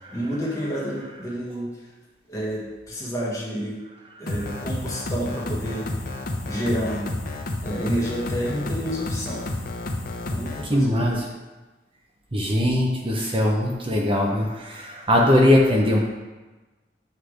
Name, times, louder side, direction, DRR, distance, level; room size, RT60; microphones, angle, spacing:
voice 1, 0.1-1.7 2.3-3.8 4.2-5.9 6.5-7.0 7.6-9.4 10.2-11.2, equal, 20° left, -5 dB, 1.5 m, -29 dB
sound 1, 4.3-10.7, left 2 dB, 55° left, 0.7 m, -30 dB
voice 2, 10.6-11.2 12.3-16.1, left 1 dB, 30° right, -2 dB, 0.7 m, -21 dB
7.9 x 3.3 x 5.0 m, 1.2 s
head